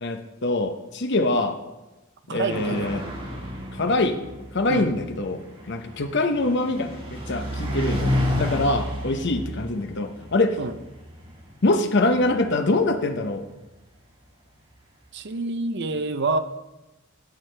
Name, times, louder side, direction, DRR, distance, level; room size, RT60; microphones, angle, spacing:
voice 1, 0.0-1.6 2.3-3.1 3.7-4.2 4.5-10.6 11.6-13.5, left 2 dB, 55° left, 8 dB, 0.8 m, -24 dB
voice 2, 2.3-3.1 4.7-4.9 10.6-10.7 15.1-16.4, right 3 dB, 55° right, 10 dB, 0.6 m, -27 dB
sound 1, 2.5-13.5, left 1 dB, 25° right, 1.9 m, -31 dB
13.5 x 8.3 x 3.4 m, 1.0 s
head